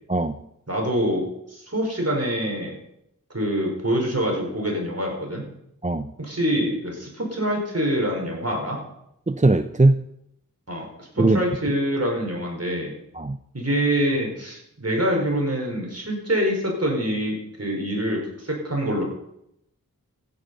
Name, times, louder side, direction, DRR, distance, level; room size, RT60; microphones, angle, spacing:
voice 1, 0.1-0.4 5.8-6.1 9.3-10.0 11.2-11.4 13.1-13.4, right 2 dB, 20° right, 10 dB, 0.6 m, -20 dB
voice 2, 0.7-2.7 3.3-5.5 6.2-8.8 10.7-12.9 13.5-19.0, equal, 45° right, 0 dB, 4.9 m, -25 dB
15.5 x 9.2 x 5.5 m, 0.79 s
wide cardioid pair, 50°, 34 cm